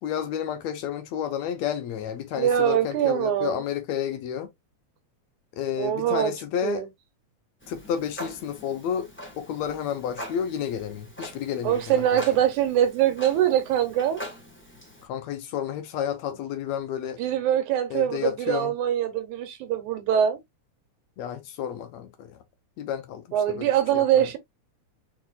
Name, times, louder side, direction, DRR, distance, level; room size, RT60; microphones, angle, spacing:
voice 1, 0.0-4.5 5.5-6.8 7.7-9.1 9.4-12.2 15.0-17.2 17.9-18.8 21.2-22.4 22.8-24.3, left 9 dB, 75° left, 1.9 m, -31 dB
voice 2, 2.4-3.6 5.8-6.3 6.6-6.9 11.6-14.2 17.2-20.4 23.3-24.4, right 10 dB, 85° right, 2.4 m, -23 dB
Clock, 7.6-15.0, equal, 20° left, 0.3 m, -42 dB
4.9 x 4.7 x 2.3 m
omnidirectional pair, 3.3 m